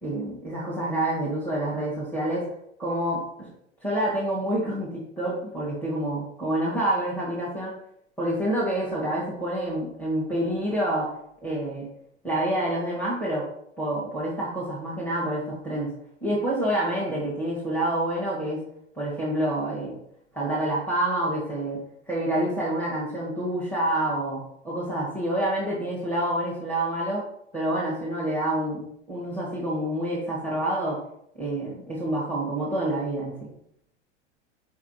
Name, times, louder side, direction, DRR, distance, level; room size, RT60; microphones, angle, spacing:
voice 1, 0.0-2.5 2.8-3.5 3.8-7.8 8.2-11.1 11.4-11.9 12.2-13.5 13.8-15.9 16.2-18.6 18.9-20.0 20.3-27.2 27.5-31.0 31.3-33.4, right 1 dB, 5° left, -7 dB, 2.2 m, -27 dB
5.9 x 5.8 x 3.1 m, 0.72 s
figure-of-eight pair, 90°, 36 cm